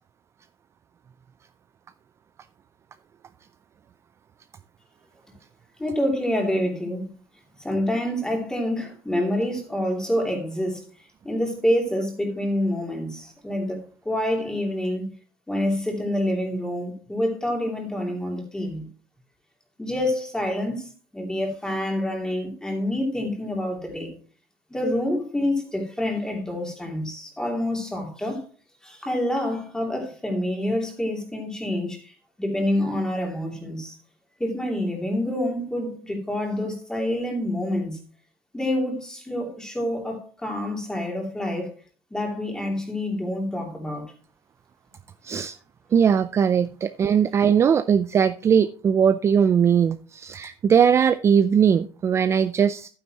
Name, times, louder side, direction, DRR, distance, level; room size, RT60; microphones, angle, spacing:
voice 1, 5.8-7.1 7.6-10.8 11.2-15.1 15.5-18.8 19.8-24.1 24.7-28.4 28.8-33.9 34.4-38.0 38.5-41.7 42.1-44.1, left 1 dB, 5° left, 2.8 m, -27 dB
voice 2, 45.2-45.5 45.9-52.9, right 7 dB, 25° right, 0.4 m, -20 dB
11.5 x 9.5 x 2.9 m
cardioid pair, 155°, 11 cm